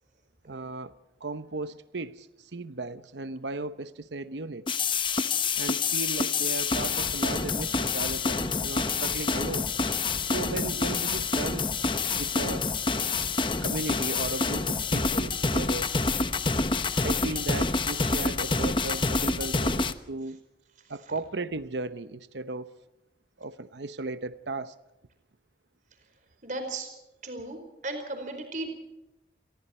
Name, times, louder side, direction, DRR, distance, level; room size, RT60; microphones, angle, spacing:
voice 1, 0.5-4.7 5.6-9.7 10.2-11.7 12.1-12.7 13.6-15.9 17.0-20.4 20.9-22.7 23.4-24.7, right 3 dB, 90° right, 0.9 m, -36 dB
sound 1, 4.7-19.9, left 4 dB, 30° left, 1.0 m, -27 dB
voice 2, 20.8-21.1 26.4-26.9 27.2-28.7, right 2 dB, 45° right, 4.6 m, -36 dB
29.0 x 23.0 x 4.4 m
head